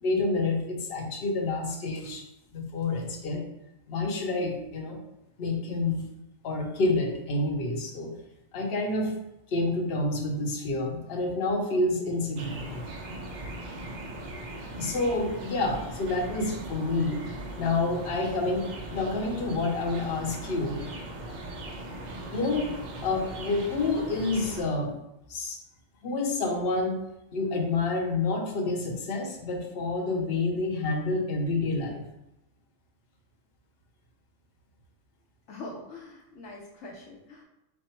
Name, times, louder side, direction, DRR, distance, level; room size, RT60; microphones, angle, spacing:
voice 1, 0.0-2.2 2.5-3.4 3.9-5.0 5.4-6.1 6.4-8.1 8.5-9.1 9.5-12.9 14.8-17.3 17.6-20.8 22.3-22.7 23.0-24.9 25.3-25.6 26.0-27.0 27.3-32.1, left 2 dB, 55° left, 1 dB, 0.9 m, -28 dB
sound 1, 12.4-24.6, right 1 dB, 60° right, 0.4 m, -39 dB
voice 2, 35.5-37.4, left 2 dB, 80° left, -2 dB, 1.0 m, -43 dB
4.3 x 2.0 x 4.3 m, 0.89 s
omnidirectional pair, 1.3 m